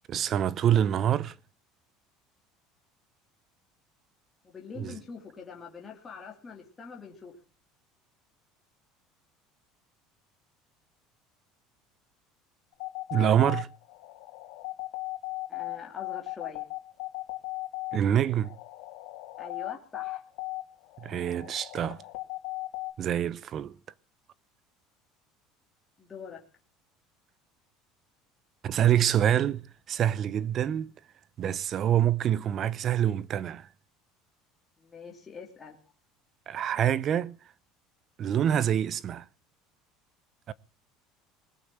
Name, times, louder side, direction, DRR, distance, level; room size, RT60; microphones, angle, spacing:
voice 1, 0.1-1.3 4.8-5.0 13.1-13.7 17.9-18.5 21.0-22.0 23.0-23.7 28.6-29.6 29.9-30.9 31.4-33.7 36.5-37.4 38.2-39.2 40.5-40.6, right 10 dB, 30° right, 0.7 m, -26 dB
voice 2, 4.4-7.3 15.5-16.6 19.4-20.2 26.0-26.4 34.8-35.8, left 6 dB, 15° left, 2.8 m, -44 dB
sound 1, 12.7-22.9, left 20 dB, 70° left, 3.0 m, -37 dB
20.5 x 8.5 x 7.6 m
cardioid pair, 165°, 0 cm